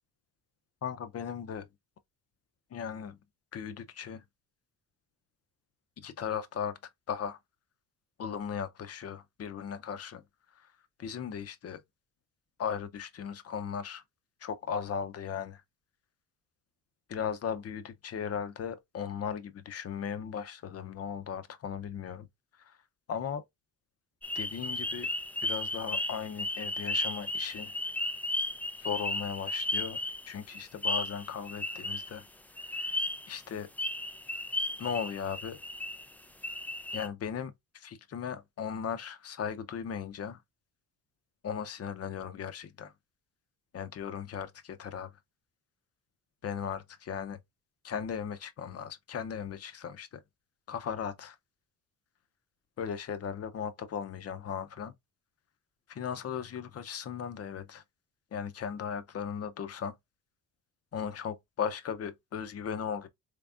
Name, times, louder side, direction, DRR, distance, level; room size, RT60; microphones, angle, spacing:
voice 1, 0.8-1.7 2.7-3.2 3.5-4.2 6.0-6.8 7.1-7.4 8.2-10.2 11.0-11.8 12.6-14.0 14.4-15.6 17.1-22.3 23.1-23.4 24.3-25.1 25.4-27.7 28.8-30.0 30.3-32.2 32.7-32.9 33.3-33.7 34.8-35.6 36.9-40.4 41.4-42.9 43.7-45.1 46.4-47.4 47.8-50.2 50.7-51.4 52.8-54.9 55.9-57.8 58.3-59.9 60.9-63.1, left 7 dB, 40° left, 0.7 m, -37 dB
sound 1, 24.2-32.2 32.6-33.4 33.8-36.1 36.4-37.1, left 2 dB, 5° left, 0.3 m, -34 dB
3.6 x 3.3 x 2.4 m
cardioid pair, 90°, 37 cm